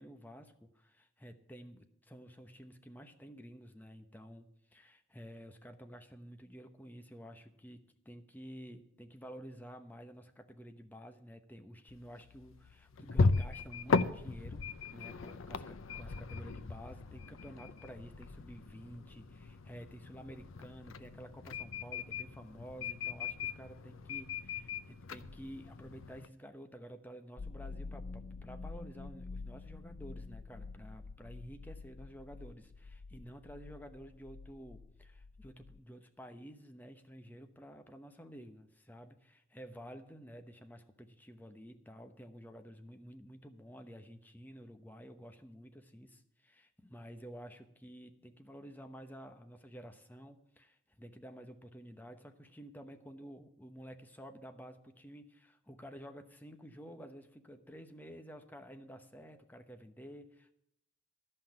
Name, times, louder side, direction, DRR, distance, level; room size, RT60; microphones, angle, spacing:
voice 1, 0.0-14.6 14.9-60.5, equal, 10° left, 6 dB, 0.9 m, -51 dB
sound 1, 11.9-26.3, left 4 dB, 85° left, 0.6 m, -37 dB
sound 2, 27.4-35.8, left 3 dB, 35° left, 0.4 m, -47 dB
13.0 x 5.9 x 8.7 m, 0.78 s
head